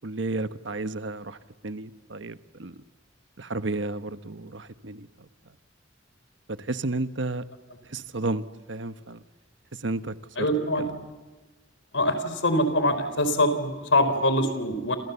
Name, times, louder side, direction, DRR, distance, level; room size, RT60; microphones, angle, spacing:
voice 1, 0.0-1.4 1.6-2.8 3.4-5.3 6.5-7.4 7.9-9.2 9.7-10.5 10.8-10.9, right 2 dB, 75° right, 11 dB, 1.2 m, -32 dB
voice 2, 10.4-11.0 11.9-15.0, left 1 dB, 80° left, 11 dB, 4.1 m, -24 dB
30.0 x 27.5 x 7.1 m, 1.2 s
head